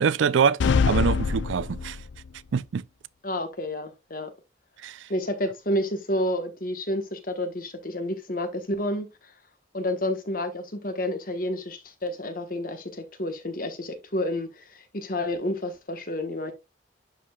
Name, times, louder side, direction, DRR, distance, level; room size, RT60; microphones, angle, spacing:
voice 1, 0.0-2.0 2.5-2.8 4.8-5.1, right 6 dB, 80° right, 0.4 m, -24 dB
sound 1, 0.6-2.3, left 5 dB, 70° left, 0.4 m, -24 dB
voice 2, 3.2-4.3 5.1-9.3 9.7-16.5, left 1 dB, 45° left, 1.3 m, -30 dB
11.0 x 4.8 x 2.3 m
head